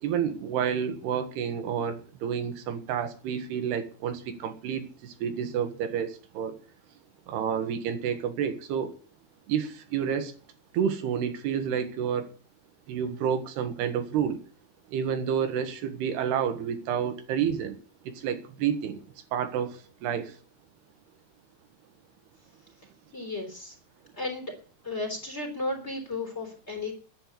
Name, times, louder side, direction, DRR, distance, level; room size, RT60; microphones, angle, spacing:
voice 1, 0.0-6.6 7.3-8.9 9.5-10.3 10.7-12.3 12.9-14.4 14.9-17.8 18.1-19.0 19.3-20.3, right 8 dB, 85° right, 9 dB, 3.6 m, -29 dB
voice 2, 23.1-23.8 24.2-24.5 24.8-26.9, left 2 dB, 15° left, 3 dB, 3.4 m, -34 dB
10.5 x 10.0 x 8.3 m, 0.39 s
omnidirectional pair, 4.6 m